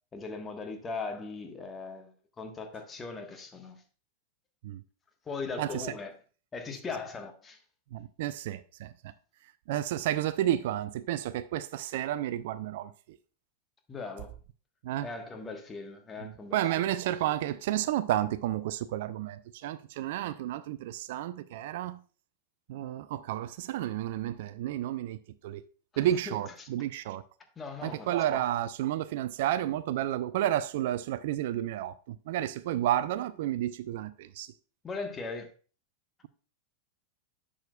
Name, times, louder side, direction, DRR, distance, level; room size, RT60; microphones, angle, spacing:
voice 1, 0.1-3.8 5.2-6.1 6.5-7.6 13.9-14.3 15.0-16.9 25.9-26.7 27.6-28.4 34.8-35.5, left 4 dB, 20° left, 1.3 m, -39 dB
voice 2, 7.9-8.9 9.7-12.9 14.8-15.1 16.5-22.0 22.7-25.2 25.4-25.6 26.0-27.2 27.8-34.5, right 12 dB, 55° right, 0.3 m, -31 dB
10.5 x 6.3 x 2.3 m
figure-of-eight pair, 90°, 0 cm